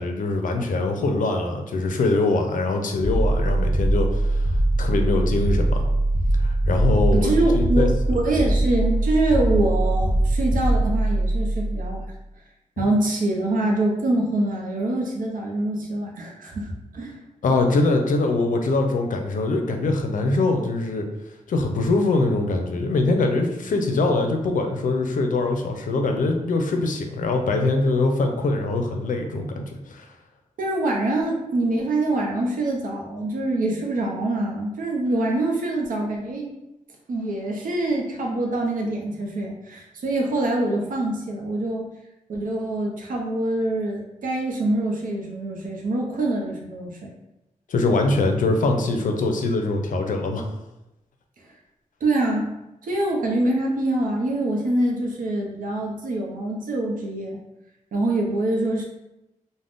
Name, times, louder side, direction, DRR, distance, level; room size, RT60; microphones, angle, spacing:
voice 1, 0.0-4.5 4.8-5.9 6.4-7.9 17.4-21.1 21.5-30.1 47.7-50.5, left 2 dB, 75° left, 4 dB, 0.4 m, -23 dB
sound 1, 3.0-12.1, right 1 dB, 30° right, 0.5 m, -22 dB
voice 2, 7.1-12.0 12.8-17.2 30.6-36.5 37.1-41.8 42.3-47.1 52.0-52.5 52.8-57.4 57.9-58.8, right 2 dB, 85° right, -1 dB, 0.6 m, -25 dB
2.4 x 2.1 x 3.4 m, 0.93 s
wide cardioid pair, 80°, 14 cm